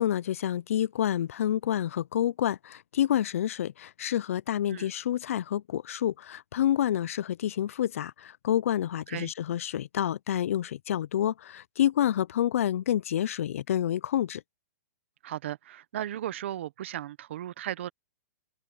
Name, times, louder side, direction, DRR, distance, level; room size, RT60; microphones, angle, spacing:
voice 1, 0.0-14.4, left 11 dB, 55° left, 0.3 m, -28 dB
voice 2, 15.2-17.9, right 12 dB, 45° right, 0.7 m, -36 dB
hypercardioid pair, 175°, 9 cm